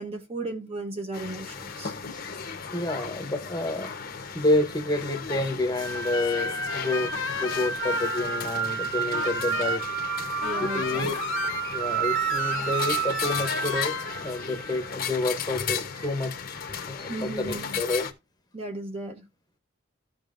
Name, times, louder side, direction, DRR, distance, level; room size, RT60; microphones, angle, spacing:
voice 1, 0.0-1.9 10.4-11.1 17.1-17.8 18.5-19.2, right 2 dB, 30° right, 1.0 m, -35 dB
sound 1, 1.1-18.1, left 6 dB, 50° left, 1.0 m, -36 dB
voice 2, 2.7-3.9 4.3-9.8 10.6-11.2 11.7-14.0 14.2-18.0, left 2 dB, 20° left, 1.0 m, -29 dB
sound 2, 5.8-15.0, right 7 dB, 50° right, 2.1 m, -31 dB
sound 3, 6.1-8.7 9.1-9.8 10.4-11.6 12.0-14.1, left 8 dB, 80° left, 0.5 m, -34 dB
13.5 x 5.3 x 2.6 m
head